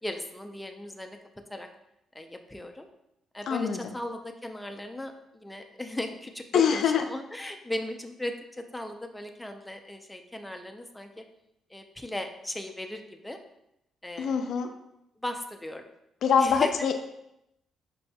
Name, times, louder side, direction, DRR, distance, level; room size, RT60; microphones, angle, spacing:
voice 1, 0.0-1.2 1.5-1.7 2.1-2.9 3.3-11.2 11.7-13.4 14.0-14.6 15.2-15.8 16.4-16.9, left 1 dB, 10° left, 5 dB, 0.5 m, -37 dB
voice 2, 3.5-3.8 6.5-7.0 14.2-14.7 16.2-16.9, left 7 dB, 70° left, 6 dB, 0.3 m, -24 dB
5.2 x 4.1 x 2.3 m, 0.84 s
cardioid pair, 90°, 0 cm